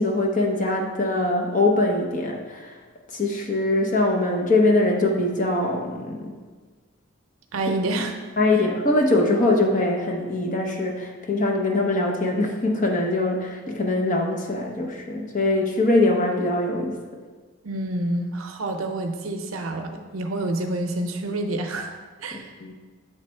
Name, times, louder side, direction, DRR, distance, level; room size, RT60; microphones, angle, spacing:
voice 1, 0.0-2.8 3.1-6.3 8.4-17.0 22.3-22.7, left 2 dB, 40° left, 1 dB, 0.8 m, -22 dB
voice 2, 7.5-8.1 17.6-22.5, right 2 dB, 85° right, 5 dB, 0.6 m, -28 dB
7.4 x 3.2 x 4.5 m, 1.4 s
head